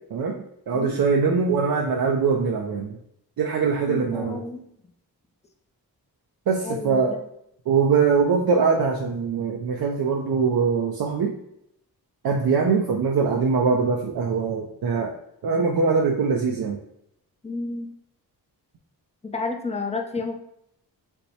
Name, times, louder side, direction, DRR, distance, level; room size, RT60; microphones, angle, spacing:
voice 1, 0.7-3.0 3.4-4.4 6.5-7.2 7.7-11.4 12.2-15.1 15.4-16.8, right 5 dB, 60° right, 0 dB, 0.5 m, -22 dB
voice 2, 3.9-4.6 6.6-7.2 17.4-17.9 19.2-20.3, left 3 dB, 15° left, 3 dB, 0.5 m, -31 dB
4.3 x 2.2 x 2.7 m, 0.76 s
cardioid pair, 60°, 40 cm